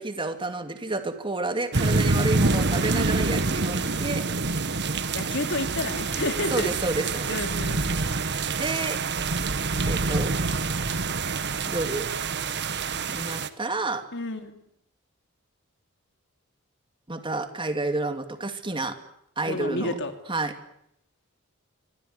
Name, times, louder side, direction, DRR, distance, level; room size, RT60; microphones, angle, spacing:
voice 1, 0.0-4.2 6.5-7.4 8.6-9.0 9.9-10.3 11.7-12.1 13.1-14.0 17.1-19.0 19.4-19.9 20.3-20.5, right 2 dB, 25° right, 8 dB, 2.7 m, -29 dB
sound 1, 1.7-13.5, right 3 dB, 55° right, 1.6 m, -26 dB
voice 2, 2.1-2.6 5.1-6.7 7.3-7.8 14.1-14.6 19.5-20.1, left 2 dB, 60° left, 7 dB, 3.4 m, -31 dB
27.0 x 24.5 x 8.2 m, 0.74 s
head